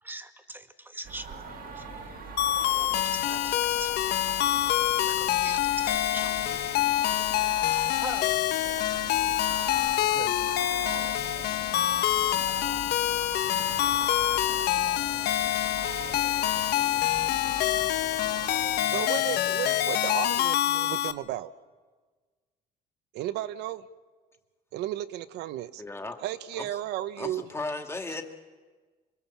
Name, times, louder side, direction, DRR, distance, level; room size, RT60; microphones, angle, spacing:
voice 1, 0.0-3.9 5.0-6.8 7.7-8.4, right 2 dB, 10° right, 8 dB, 1.8 m, -42 dB
sound 1, 1.0-18.8, right 7 dB, 60° right, 2.0 m, -42 dB
sound 2, 1.3-20.4, left 7 dB, 55° left, 2.1 m, -48 dB
sound 3, 2.4-21.1, left 13 dB, 75° left, 1.0 m, -26 dB
voice 2, 10.0-10.3 18.2-18.3 18.9-21.5 23.1-23.8 24.7-25.8 26.2-27.5, right 13 dB, 85° right, 12 dB, 1.0 m, -34 dB
voice 3, 25.8-26.2 26.6-26.7 27.2-28.2, left 2 dB, 15° left, 4 dB, 2.3 m, -35 dB
25.5 x 23.0 x 7.2 m, 1.4 s
cardioid pair, 110°, 17 cm